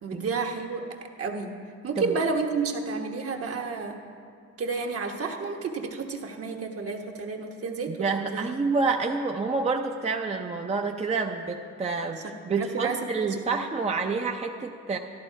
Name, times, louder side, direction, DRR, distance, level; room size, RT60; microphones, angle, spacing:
voice 1, 0.0-0.8 1.2-1.5 1.8-4.0 4.6-8.5 12.5-13.4, right 4 dB, 50° right, 2 dB, 1.3 m, -31 dB
voice 2, 7.9-15.0, right 4 dB, 20° right, 3 dB, 0.6 m, -28 dB
13.0 x 11.5 x 4.7 m, 2.3 s
cardioid pair, 90°, 30 cm